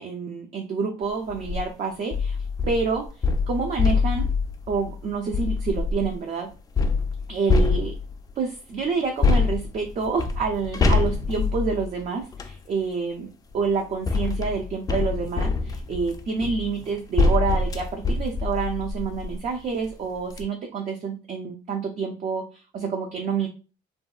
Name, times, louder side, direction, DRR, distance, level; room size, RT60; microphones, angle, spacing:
voice 1, 0.0-2.4 2.7-3.1 3.5-4.3 4.7-6.5 7.3-7.9 8.4-13.3 13.5-23.5, right 5 dB, 45° right, 2 dB, 0.5 m, -28 dB
sound 1, 1.3-1.6 2.1-6.1 6.8-8.3 9.2-12.6 13.5-19.4 19.9-20.0 20.3-20.4, left 4 dB, 20° left, 0.4 m, -25 dB
3.0 x 2.6 x 2.3 m, 0.34 s
cardioid pair, 110°, 17 cm